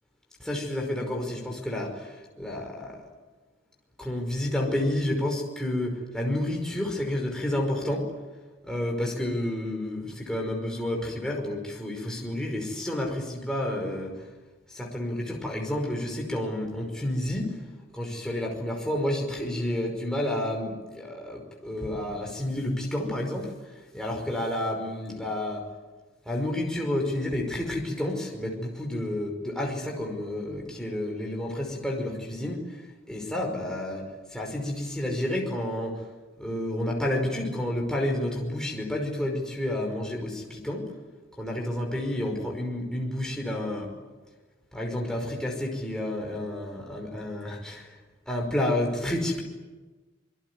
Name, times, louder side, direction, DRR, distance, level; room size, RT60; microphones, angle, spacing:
voice 1, 0.4-2.1 2.4-3.0 4.0-8.0 8.6-14.1 14.7-17.6 17.9-23.5 23.9-25.6 26.3-32.6 33.1-34.0 34.3-36.0 36.4-40.9 41.4-43.9 44.7-47.9 48.3-49.4, left 1 dB, 5° left, 0 dB, 5.3 m, -30 dB
27.0 x 22.0 x 9.8 m, 1.2 s
head